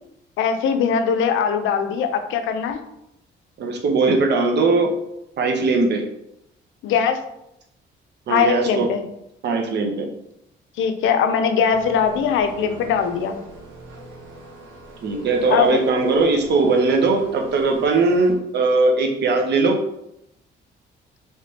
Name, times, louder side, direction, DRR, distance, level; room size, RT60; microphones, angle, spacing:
voice 1, 0.4-2.8 6.8-7.2 8.3-9.0 10.8-13.4 15.5-15.8, left 6 dB, 80° left, 7 dB, 0.5 m, -21 dB
voice 2, 3.6-4.9 5.4-6.0 8.3-8.9 9.4-10.1 15.0-19.8, right 3 dB, 60° right, 2 dB, 0.8 m, -19 dB
sound 1, 11.7-18.3, equal, 80° right, 1.4 m, -40 dB
3.2 x 3.2 x 2.8 m, 0.81 s
cardioid pair, 90°, 20 cm